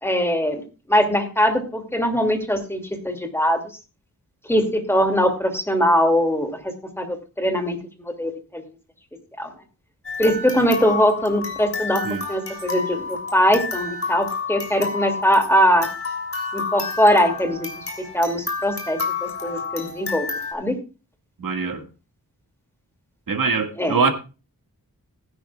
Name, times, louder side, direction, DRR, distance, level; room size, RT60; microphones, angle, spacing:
voice 1, 0.0-0.6 0.9-3.6 4.5-7.8 8.1-8.6 9.4-9.5 10.2-12.0 12.3-15.9 16.5-17.7 18.1-20.3 20.5-20.7 23.8-24.0, equal, 5° left, 2.5 m, -21 dB
sound 1, 10.0-20.5, left 4 dB, 40° left, 3.3 m, -30 dB
voice 2, 21.4-21.9 23.3-24.1, right 4 dB, 70° right, 2.0 m, -23 dB
19.0 x 10.0 x 2.4 m
wide cardioid pair, 110°, 35 cm